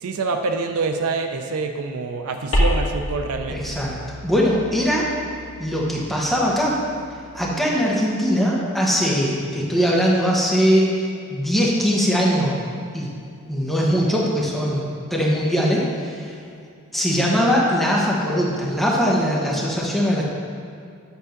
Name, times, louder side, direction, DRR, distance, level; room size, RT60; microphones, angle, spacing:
voice 1, 0.0-3.8, right 4 dB, 75° right, 6 dB, 0.5 m, -26 dB
sound 1, 2.5-7.4, equal, 65° left, 1.7 m, -28 dB
voice 2, 3.5-3.9 4.2-5.1 5.6-6.8 7.3-12.7 12.9-13.1 13.5-16.3 16.9-20.2, equal, ahead, -5 dB, 1.1 m, -21 dB
8.2 x 3.6 x 6.4 m, 2.3 s
head